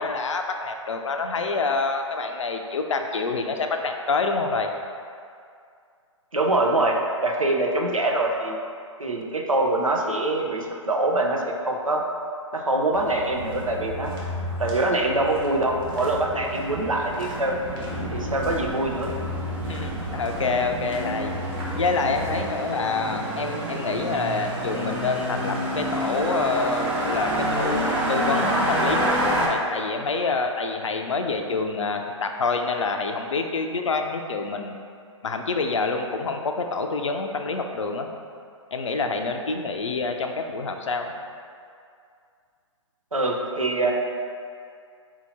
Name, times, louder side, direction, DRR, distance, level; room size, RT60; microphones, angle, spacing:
voice 1, 0.0-4.7 19.6-21.3 21.8-34.8 35.2-38.1 38.7-41.2, left 4 dB, 70° left, 5 dB, 0.5 m, -27 dB
voice 2, 6.3-7.0 7.2-8.6 9.0-12.0 12.5-14.1 14.6-17.6 18.1-19.1 43.1-43.9, right 2 dB, 90° right, 0 dB, 0.6 m, -24 dB
sound 1, 12.9-22.4, equal, 40° right, 1.1 m, -34 dB
sound 2, 16.4-29.5, right 1 dB, 10° right, 0.4 m, -28 dB
4.3 x 2.8 x 4.1 m, 2.3 s
figure-of-eight pair, 125°, 17 cm